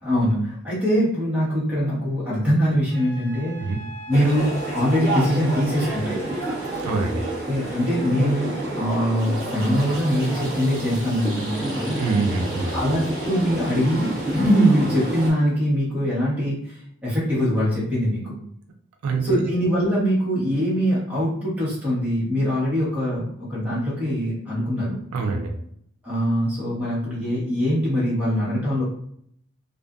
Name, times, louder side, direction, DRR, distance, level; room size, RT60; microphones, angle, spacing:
voice 1, 0.0-3.7 4.1-6.2 7.5-12.0 12.7-18.4 19.2-25.0 26.0-28.8, equal, 5° right, -8 dB, 1.0 m, -23 dB
Wind instrument woodwind instrument, 2.9-6.8, right 1 dB, 80° left, 0.5 m, -42 dB
sound 1, 4.1-15.3, right 2 dB, 10° left, 1.2 m, -30 dB
voice 2, 6.8-7.2 12.0-12.8 19.0-19.3 25.1-25.5, right 3 dB, 85° right, 3 dB, 0.4 m, -24 dB
sound 2, 9.2-15.5, right 1 dB, 60° right, 1.1 m, -43 dB
2.5 x 2.3 x 2.4 m, 0.67 s
head